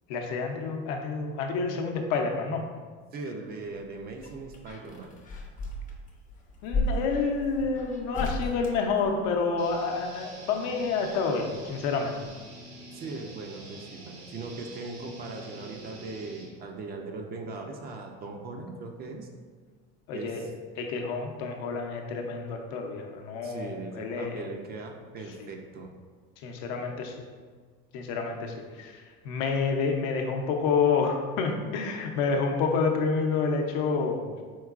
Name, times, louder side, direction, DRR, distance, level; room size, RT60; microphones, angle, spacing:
voice 1, 0.1-2.6 6.6-12.2 20.1-20.5 20.8-24.5 25.4-25.5 26.4-27.1 27.9-29.0 29.2-34.3, left 4 dB, 70° left, 2 dB, 0.7 m, -28 dB
voice 2, 3.1-5.2 12.9-19.3 20.1-20.5 23.4-25.9, right 3 dB, 30° right, 3 dB, 0.4 m, -39 dB
sound 1, 3.7-9.7 11.1-12.0 12.2-12.3, left 2 dB, 25° left, 0.6 m, -35 dB
sound 2, 9.6-16.4, right 2 dB, 75° right, 1.5 m, -47 dB
4.5 x 3.7 x 2.4 m, 1.5 s
cardioid pair, 135°, 30 cm